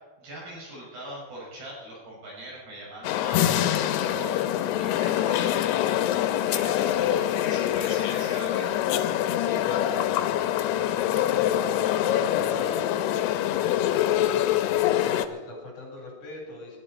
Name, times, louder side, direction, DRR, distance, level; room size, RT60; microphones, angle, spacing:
voice 1, 0.2-8.8, right 1 dB, 80° right, -5 dB, 8.1 m, -40 dB
sound 1, 3.0-15.3, left 12 dB, 90° left, 2.7 m, -25 dB
voice 2, 9.4-11.0 11.3-13.3 13.6-16.8, left 2 dB, 50° left, -1 dB, 5.1 m, -41 dB
21.5 x 12.0 x 4.3 m, 1.4 s
omnidirectional pair, 4.7 m